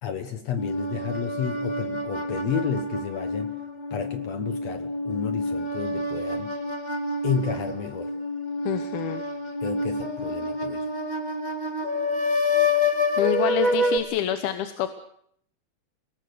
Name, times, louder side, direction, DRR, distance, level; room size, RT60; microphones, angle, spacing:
voice 1, 0.0-3.6 3.9-6.6 7.2-8.1 9.6-10.9, left 7 dB, 60° left, 9 dB, 1.8 m, -31 dB
sound 1, 0.6-14.0, left 2 dB, 15° left, 1.4 m, -28 dB
voice 2, 8.7-9.2 13.2-14.9, left 11 dB, 80° left, 9 dB, 3.0 m, -27 dB
29.0 x 19.0 x 6.8 m, 0.68 s
omnidirectional pair, 4.3 m